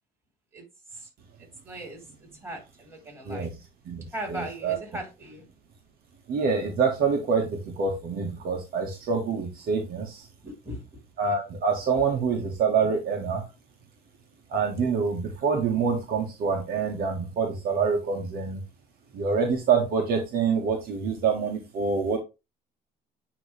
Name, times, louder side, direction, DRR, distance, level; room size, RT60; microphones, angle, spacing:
voice 1, 1.6-3.5 4.1-5.5 10.4-10.9, right 1 dB, 15° right, -1 dB, 4.2 m, -38 dB
voice 2, 3.2-3.5 3.8-4.8 6.3-10.3 11.2-13.4 14.5-18.6 19.1-22.2, right 5 dB, 65° right, 2 dB, 1.6 m, -26 dB
9.3 x 3.2 x 3.4 m, 0.26 s
cardioid pair, 110°, 17 cm